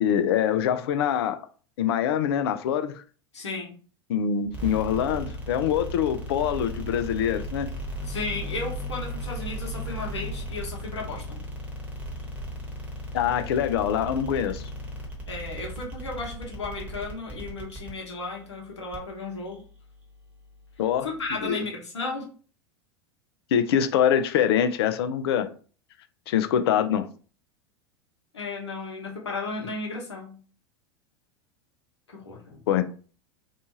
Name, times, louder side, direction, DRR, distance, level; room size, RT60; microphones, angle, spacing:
voice 1, 0.0-1.4 1.8-3.0 4.1-7.7 13.1-14.7 20.8-21.1 21.4-21.6 23.5-25.5 26.3-27.1 32.7-32.8, left 9 dB, 60° left, 0.4 m, -24 dB
voice 2, 3.3-3.7 8.1-11.4 15.3-19.6 21.0-22.3 28.3-30.4 32.1-32.6, left 3 dB, 75° left, 0.9 m, -34 dB
sound 1, 4.5-21.5, equal, 10° right, 1.0 m, -37 dB
2.7 x 2.3 x 2.7 m
figure-of-eight pair, 85°, 15 cm